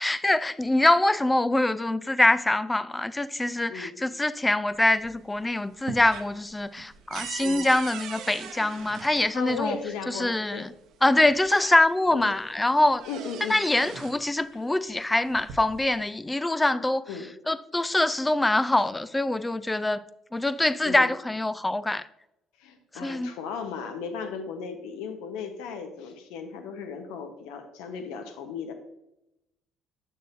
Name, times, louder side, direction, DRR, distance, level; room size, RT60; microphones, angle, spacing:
voice 1, 0.0-9.8 10.1-10.7 11.0-13.0 13.5-17.1 17.5-20.0 20.3-22.1 22.9-23.3, left 2 dB, 15° left, 0.4 m, -24 dB
sound 1, 4.7-5.4 5.7-9.7 10.8-10.9 11.3-12.2 12.6-14.2 15.2-16.0, right 8 dB, 70° right, 0.7 m, -41 dB
voice 2, 9.2-10.7 12.1-12.3 13.1-13.6 17.1-17.3 20.8-21.1 22.6-28.7, left 5 dB, 80° left, 0.9 m, -36 dB
7.7 x 6.5 x 2.6 m
supercardioid pair, 75°, 0 cm